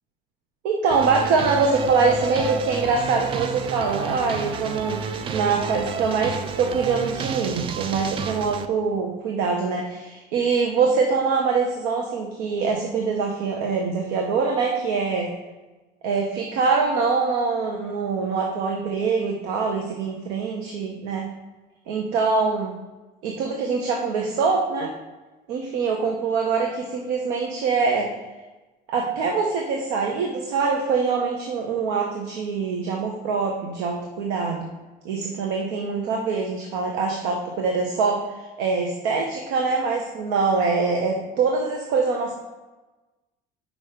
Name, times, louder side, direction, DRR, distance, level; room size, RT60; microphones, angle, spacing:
voice 1, 0.6-15.3 16.0-21.3 21.9-22.8 23.2-24.9 25.5-28.1 28.9-34.7 35.0-38.3 38.6-42.3, right 4 dB, 90° right, 1 dB, 1.1 m, -24 dB
sound 1, 0.9-8.7, right 6 dB, 30° right, 0.4 m, -30 dB
6.2 x 5.1 x 5.1 m, 1.2 s
cardioid pair, 165°, 17 cm